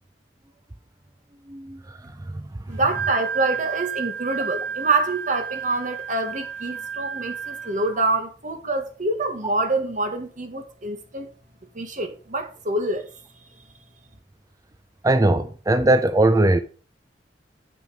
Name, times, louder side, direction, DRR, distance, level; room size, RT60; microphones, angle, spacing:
voice 1, 1.5-2.0 2.3-2.4 15.0-16.6, right 2 dB, 20° right, 0.6 m, -19 dB
Wind instrument woodwind instrument, 2.7-8.0, right 7 dB, 5° left, 2.7 m, -31 dB
voice 2, 2.7-11.3 11.7-13.1, right 2 dB, 45° right, 1.8 m, -26 dB
9.0 x 6.3 x 5.1 m
head